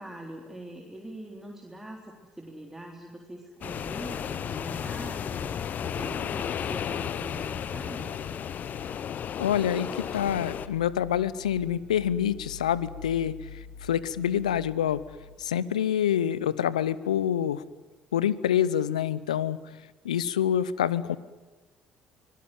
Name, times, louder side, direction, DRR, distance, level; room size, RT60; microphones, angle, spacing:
voice 1, 0.0-8.1, right 1 dB, 10° right, 0 dB, 3.7 m, -43 dB
sound 1, 3.6-10.7, left 8 dB, 50° left, 1.1 m, -33 dB
sound 2, 6.8-15.4, left 4 dB, 70° left, 4.8 m, -47 dB
voice 2, 9.4-15.0 15.4-17.6 18.1-19.6 20.0-21.2, left 10 dB, 85° left, 19 dB, 0.7 m, -27 dB
24.5 x 19.0 x 9.2 m, 1.2 s
hypercardioid pair, 55°, 4 cm